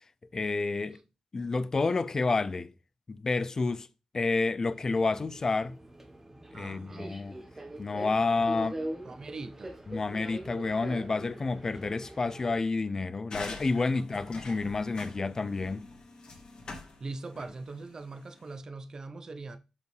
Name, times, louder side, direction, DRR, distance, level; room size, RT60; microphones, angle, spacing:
voice 1, 0.3-1.0 1.3-2.7 3.1-3.9 4.1-5.8 6.5-7.4 7.8-8.8 9.9-15.9, left 3 dB, 25° left, 0.4 m, -29 dB
Subway metro underground, 4.7-12.6, right 1 dB, 15° right, 0.9 m, -42 dB
voice 2, 6.5-7.1 8.4-8.7 9.0-9.8 13.9-14.4 17.0-19.6, right 3 dB, 30° right, 0.5 m, -42 dB
sound 1, 13.3-18.5, left 3 dB, 45° left, 1.6 m, -45 dB
6.9 x 5.3 x 3.1 m
wide cardioid pair, 155°, 2 cm